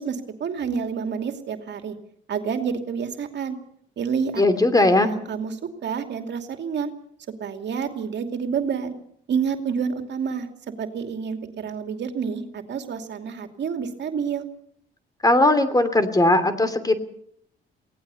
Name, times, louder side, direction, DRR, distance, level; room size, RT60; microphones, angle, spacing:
voice 1, 0.0-2.0 2.3-3.6 4.0-4.4 4.8-6.9 7.4-8.9 9.3-10.5 10.8-14.5, right 6 dB, 60° right, 6 dB, 2.6 m, -28 dB
voice 2, 4.4-5.1 15.2-17.0, left 2 dB, 20° left, 11 dB, 2.9 m, -18 dB
23.5 x 17.5 x 7.0 m, 0.69 s
cardioid pair, 90°, 20 cm